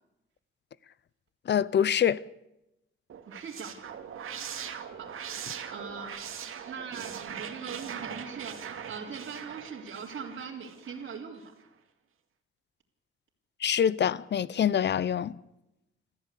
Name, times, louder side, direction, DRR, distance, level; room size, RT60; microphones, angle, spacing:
voice 1, 1.5-2.2 13.6-15.4, left 9 dB, 55° left, 0.7 m, -25 dB
sound 1, 3.1-11.2, right 8 dB, 75° right, 2.3 m, -41 dB
voice 2, 3.3-3.9 4.9-5.1 5.7-6.1 6.7-8.6 8.9-11.5, right 6 dB, 60° right, 3.7 m, -41 dB
27.0 x 14.5 x 8.4 m
wide cardioid pair, 130°, 21 cm